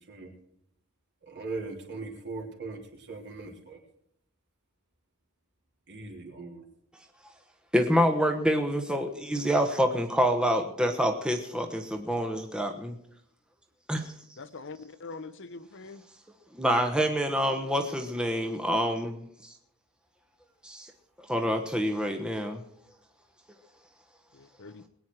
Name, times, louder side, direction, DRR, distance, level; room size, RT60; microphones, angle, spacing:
voice 1, 1.3-2.8 3.1-3.8 5.9-6.6, right 3 dB, 55° right, 2 dB, 3.6 m, -39 dB
voice 2, 7.7-13.0 13.9-14.1 16.5-19.5 20.6-20.9 21.2-22.6, equal, 5° right, 4 dB, 1.2 m, -27 dB
voice 3, 14.4-16.0 24.3-24.8, left 3 dB, 55° left, 12 dB, 0.9 m, -43 dB
21.5 x 9.3 x 4.7 m, 0.74 s
head